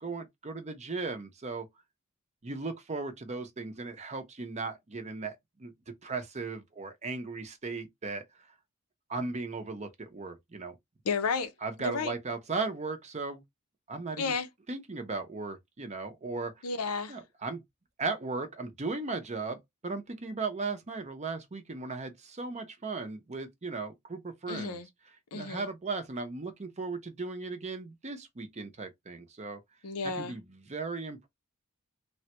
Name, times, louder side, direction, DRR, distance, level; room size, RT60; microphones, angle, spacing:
voice 1, 0.0-1.7 2.4-8.5 9.1-10.7 11.6-13.4 13.9-14.3 14.7-16.6 17.1-17.6 18.0-24.8 25.3-29.6 30.2-31.3, right 3 dB, 30° right, 0.7 m, -37 dB
voice 2, 11.0-11.5 11.8-12.2 14.2-14.5 16.6-17.2 24.5-24.9 25.3-25.7 29.8-30.4, left 4 dB, 80° left, 0.6 m, -32 dB
3.4 x 2.2 x 2.8 m
head